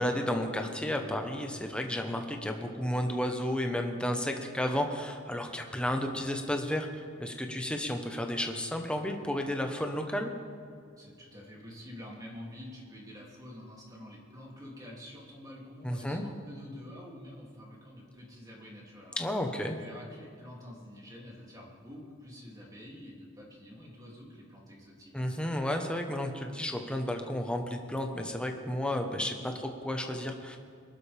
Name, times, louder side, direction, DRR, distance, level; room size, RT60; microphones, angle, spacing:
voice 1, 0.0-10.3 15.8-16.2 19.2-19.8 25.1-30.6, left 1 dB, 5° left, 3 dB, 1.2 m, -32 dB
voice 2, 11.0-19.2 19.8-25.3, left 1 dB, 20° right, -3 dB, 2.9 m, -48 dB
22.0 x 12.0 x 3.6 m, 2.4 s
head